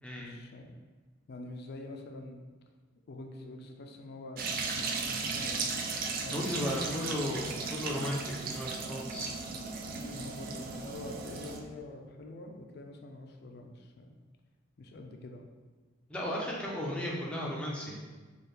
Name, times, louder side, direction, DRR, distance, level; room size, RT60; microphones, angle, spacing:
voice 1, 0.2-0.7 1.3-2.4 3.1-4.5 4.7-5.9 6.2-7.2 9.8-14.2 14.8-15.4 16.8-16.9, left 2 dB, 55° left, 3 dB, 0.4 m, -45 dB
sound 1, 4.4-11.6, right 4 dB, 45° right, 0.3 m, -36 dB
voice 2, 6.3-9.3 16.1-18.0, left 1 dB, 5° left, -4 dB, 0.6 m, -35 dB
4.5 x 2.3 x 3.2 m, 1.4 s
head